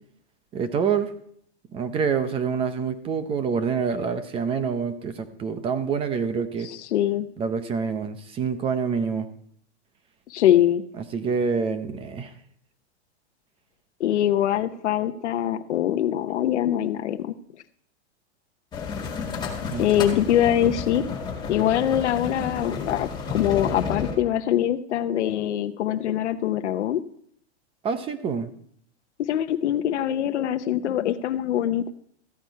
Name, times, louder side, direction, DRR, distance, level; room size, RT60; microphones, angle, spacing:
voice 1, 0.5-1.1 1.7-6.7 7.4-9.3 11.0-12.3 19.7-19.9 27.8-28.5, right 6 dB, 15° right, 10 dB, 0.7 m, -26 dB
voice 2, 6.6-7.3 10.3-10.8 14.0-17.3 19.8-21.1 21.5-27.0 29.2-31.9, left 11 dB, 90° left, 8 dB, 0.8 m, -23 dB
sound 1, 18.7-24.2, left 5 dB, 15° left, 2.0 m, -31 dB
14.0 x 9.3 x 4.6 m, 0.66 s
supercardioid pair, 155°, 34 cm